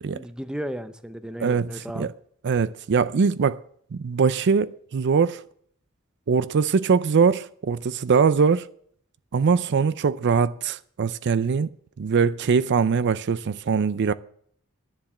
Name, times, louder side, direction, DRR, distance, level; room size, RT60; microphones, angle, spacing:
voice 1, 0.0-2.1, equal, 5° right, 0.6 m, -34 dB
voice 2, 1.4-2.1 2.4-3.6 3.9-5.4 6.3-8.7 9.3-11.7 12.0-14.1, right 5 dB, 55° right, 0.4 m, -22 dB
10.5 x 7.4 x 8.7 m
head